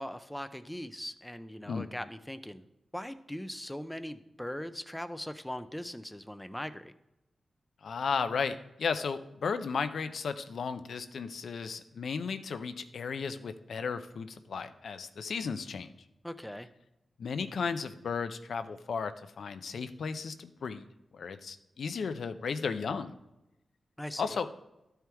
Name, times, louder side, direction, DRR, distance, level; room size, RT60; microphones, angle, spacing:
voice 1, 0.0-2.6 2.9-6.9 16.2-16.7 24.0-24.3, left 1 dB, 5° left, 11 dB, 0.5 m, -40 dB
voice 2, 7.8-15.9 17.2-20.8 21.1-23.1 24.2-24.5, left 5 dB, 75° left, 10 dB, 0.6 m, -34 dB
12.5 x 4.6 x 3.4 m, 0.93 s
wide cardioid pair, 90°, 0 cm